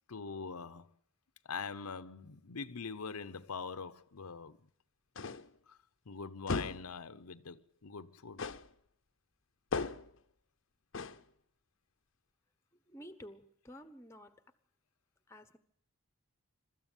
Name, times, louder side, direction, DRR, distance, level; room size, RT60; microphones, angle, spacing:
voice 1, 0.1-0.9 1.4-4.6 5.7-5.8 6.1-8.4, left 5 dB, 90° left, 0.8 m, -43 dB
sound 1, 5.2-5.6 6.5-6.9 8.4-8.7 9.7-10.2 10.9-11.2, left 4 dB, 60° left, 0.7 m, -37 dB
voice 2, 12.9-14.4 15.3-15.6, equal, 10° left, 1.1 m, -52 dB
22.5 x 13.5 x 9.0 m
head